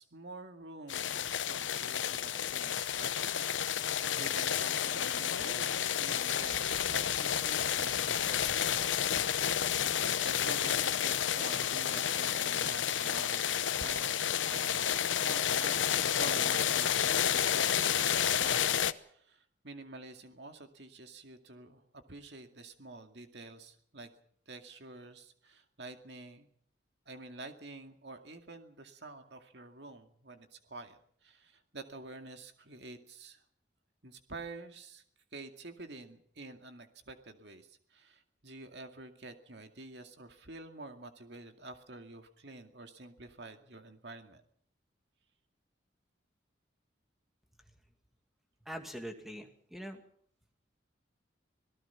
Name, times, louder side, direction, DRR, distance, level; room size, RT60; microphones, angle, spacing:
voice 1, 0.0-3.3 3.8-9.3 10.2-15.8 16.2-24.1 24.5-26.5 27.1-33.4 34.0-35.0 35.3-44.4, right 2 dB, 65° right, 6 dB, 2.3 m, -48 dB
sound 1, 0.9-18.9, left 9 dB, 85° left, 0.8 m, -30 dB
voice 2, 48.7-50.0, equal, ahead, 5 dB, 2.2 m, -43 dB
26.0 x 18.0 x 5.9 m, 0.64 s
head